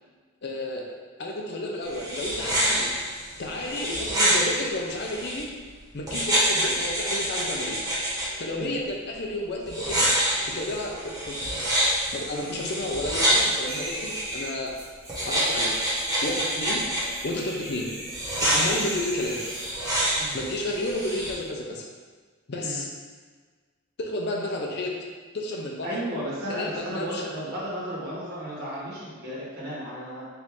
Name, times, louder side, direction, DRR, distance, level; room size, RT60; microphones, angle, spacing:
voice 1, 0.4-2.9 3.4-5.5 5.9-7.8 8.4-10.1 10.5-11.4 12.1-14.7 15.2-15.8 16.2-16.8 17.2-17.9 18.4-19.4 20.3-21.8 22.5-22.9 24.0-25.0 25.3-26.0 26.5-27.3, left 1 dB, 50° left, -1 dB, 0.5 m, -31 dB
sound 1, 1.8-5.4 6.1-8.3 9.7-14.4 15.1-17.0 18.1-21.3, right 1 dB, 15° right, 1.1 m, -27 dB
sound 2, 13.2-20.1 21.0-21.2, right 1 dB, 75° right, 1.1 m, -39 dB
voice 2, 25.8-30.2, equal, 50° right, -7 dB, 1.2 m, -34 dB
4.5 x 2.6 x 3.6 m, 1.5 s
head